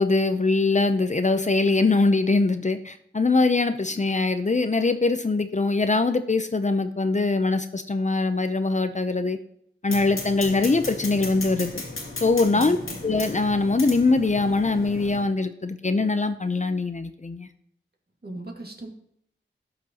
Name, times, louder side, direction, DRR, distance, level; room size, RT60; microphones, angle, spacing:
voice 1, 0.0-9.4 9.8-11.8 12.2-12.8 13.0-17.5, left 3 dB, 35° left, 9 dB, 0.6 m, -22 dB
sound 1, 9.9-15.2, left 2 dB, 80° left, 2.1 m, -36 dB
voice 2, 12.5-13.0 18.2-18.9, right 2 dB, 50° right, 1 dB, 2.1 m, -37 dB
17.0 x 5.9 x 2.9 m, 0.70 s
wide cardioid pair, 60°, 21 cm